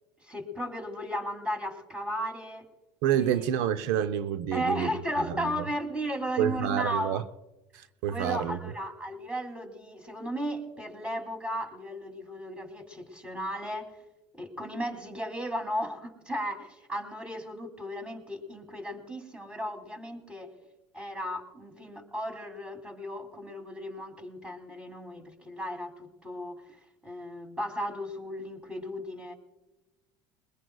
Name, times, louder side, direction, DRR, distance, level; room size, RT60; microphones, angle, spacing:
voice 1, 0.2-2.7 3.1-3.4 4.5-7.2 8.1-14.0 14.4-20.5 20.9-29.3, equal, 10° right, 5 dB, 2.9 m, -35 dB
voice 2, 3.0-5.6 6.4-7.2 7.7-8.6, right 10 dB, 75° right, 11 dB, 0.7 m, -28 dB
21.5 x 21.0 x 2.3 m, 1.0 s
supercardioid pair, 90°, 11 cm